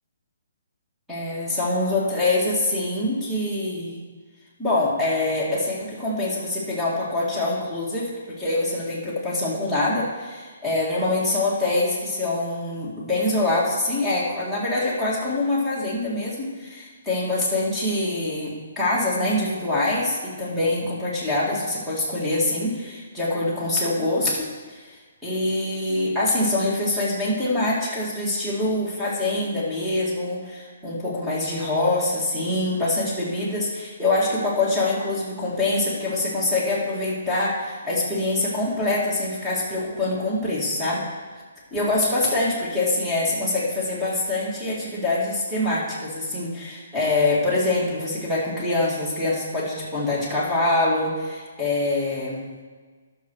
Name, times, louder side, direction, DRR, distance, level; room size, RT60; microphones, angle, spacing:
voice 1, 1.1-4.0 4.6-25.0 25.2-41.1 41.7-52.5, left 2 dB, ahead, -7 dB, 2.1 m, -24 dB
11.0 x 6.7 x 6.3 m, 1.5 s
hypercardioid pair, 175°, 0 cm